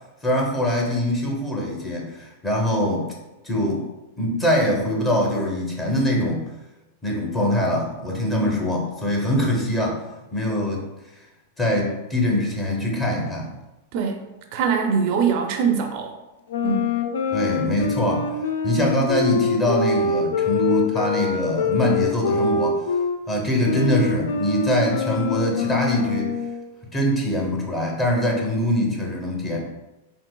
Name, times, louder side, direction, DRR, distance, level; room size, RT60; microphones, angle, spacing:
voice 1, 0.2-3.1 3.4-3.8 4.2-6.5 7.0-10.0 10.3-10.8 11.6-13.5 17.3-18.3 18.6-22.8 23.3-26.3 26.9-29.6, left 1 dB, 20° left, -2 dB, 0.8 m, -23 dB
voice 2, 13.9-14.2 14.5-16.1 16.6-17.0, right 6 dB, 55° right, 4 dB, 0.4 m, -22 dB
sound 1, 16.5-23.2 23.6-26.6, left 4 dB, 85° left, 0.3 m, -25 dB
3.7 x 2.4 x 2.2 m, 1.0 s
hypercardioid pair, 125°, 0 cm